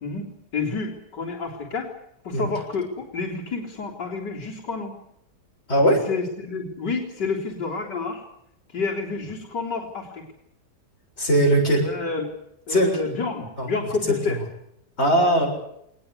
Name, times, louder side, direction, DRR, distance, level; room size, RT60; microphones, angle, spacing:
voice 1, 0.5-1.9 2.2-5.0 6.1-8.2 8.7-10.3 11.8-12.3 12.7-14.4, left 4 dB, 85° left, -3 dB, 4.4 m, -29 dB
voice 2, 5.7-6.0 11.2-11.9 12.7-12.9 13.6-13.7 14.3-14.4 15.0-15.5, right 1 dB, 40° left, 0 dB, 7.6 m, -19 dB
22.5 x 20.0 x 8.5 m, 0.77 s
omnidirectional pair, 1.8 m